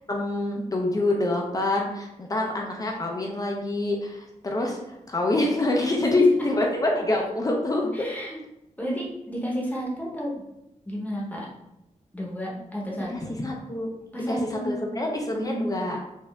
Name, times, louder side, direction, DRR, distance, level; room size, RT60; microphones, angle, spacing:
voice 1, 0.1-4.8 5.1-7.9 13.1-13.9 14.3-14.4 14.6-16.0, left 2 dB, 30° left, 0 dB, 0.6 m, -26 dB
voice 2, 6.0-6.4 7.9-8.4 8.8-10.3 10.8-11.5 12.1-13.1 14.1-15.0 15.3-15.7, equal, 10° left, -3 dB, 1.0 m, -31 dB
4.5 x 2.6 x 3.4 m, 0.88 s
wide cardioid pair, 140°, 13 cm